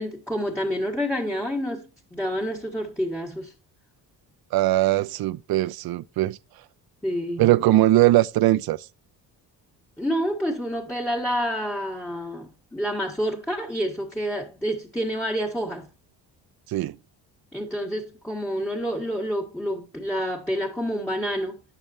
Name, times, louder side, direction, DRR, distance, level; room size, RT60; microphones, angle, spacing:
voice 1, 0.0-3.5 7.0-7.5 10.0-15.9 17.5-21.6, equal, 5° left, 1.6 m, -28 dB
voice 2, 4.5-6.4 7.4-8.9 16.7-17.0, right 16 dB, 60° right, 0.5 m, -20 dB
8.9 x 6.6 x 2.7 m
cardioid pair, 85°, 42 cm